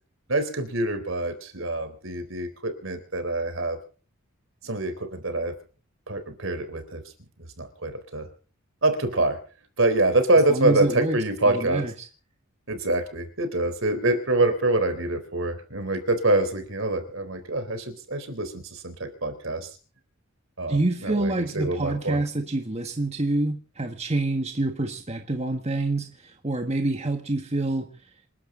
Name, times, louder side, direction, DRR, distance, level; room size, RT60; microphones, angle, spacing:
voice 1, 0.3-3.8 4.6-5.5 6.1-7.0 7.6-8.3 8.8-9.4 9.8-11.9 12.7-19.7 20.6-22.2, right 2 dB, 65° right, 9 dB, 4.0 m, -25 dB
voice 2, 10.5-11.2 11.4-12.1 20.7-27.9, right 2 dB, 30° right, 5 dB, 1.6 m, -27 dB
28.0 x 12.0 x 3.9 m, 0.38 s
head